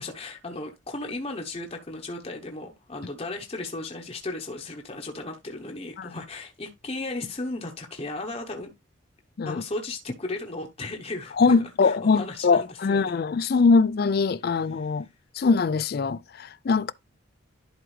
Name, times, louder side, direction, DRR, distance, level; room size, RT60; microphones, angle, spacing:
voice 1, 0.0-8.7 9.4-13.0 14.7-14.9, left 2 dB, 30° left, 0.9 m, -35 dB
voice 2, 11.4-15.1 15.4-16.9, left 4 dB, 50° left, 0.4 m, -22 dB
11.0 x 4.9 x 3.2 m
head